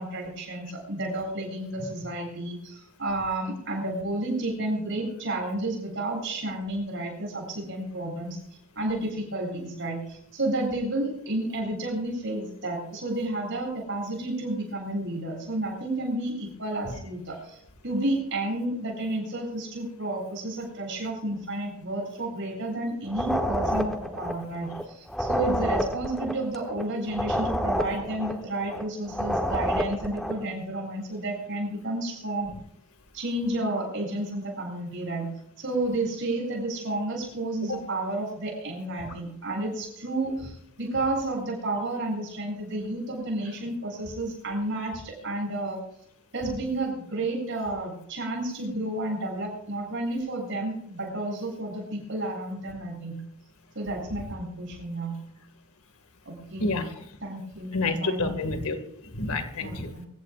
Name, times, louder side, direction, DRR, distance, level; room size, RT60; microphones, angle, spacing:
voice 1, 0.0-8.4 8.7-32.5 33.1-35.3 35.6-45.8 46.3-53.2 53.7-55.1 56.3-56.7 57.2-58.3 59.6-60.1, right 1 dB, 60° right, -1 dB, 7.8 m, -31 dB
sound 1, 23.1-30.4, equal, ahead, 1.2 m, -29 dB
voice 2, 56.6-56.9 57.7-58.8 59.0-59.9, left 3 dB, 80° left, 7 dB, 2.2 m, -28 dB
25.5 x 15.0 x 2.6 m, 0.72 s
head